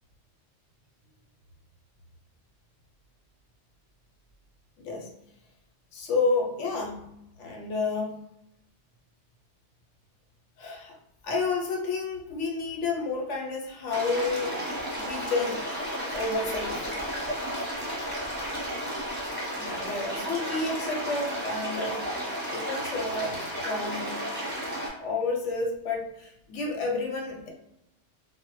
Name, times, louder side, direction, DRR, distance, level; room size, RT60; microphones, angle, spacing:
voice 1, 4.8-5.1 5.9-7.1 7.4-8.1 10.6-11.0 11.2-14.6 15.0-15.7 16.1-16.9 19.5-22.1 22.5-24.3 25.0-27.5, left 3 dB, 85° left, 0 dB, 0.9 m, -30 dB
sound 1, 13.9-24.9, equal, 10° right, 0.7 m, -33 dB
2.1 x 2.0 x 3.0 m, 0.84 s
omnidirectional pair, 1.2 m